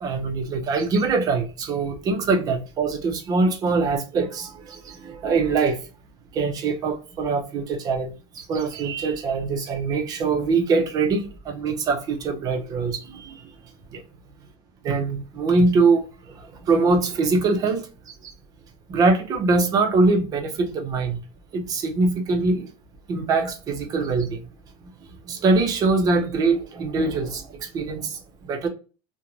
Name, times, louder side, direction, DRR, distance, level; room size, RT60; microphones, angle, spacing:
voice 1, 0.0-5.8 6.3-8.1 8.5-13.5 13.9-14.0 14.8-17.9 18.2-18.3 18.9-21.2 21.5-22.7 23.1-24.4 25.3-28.2 28.5-28.7, right 3 dB, 25° right, 0.5 m, -23 dB
3.0 x 2.1 x 2.4 m
cardioid pair, 165°, 14 cm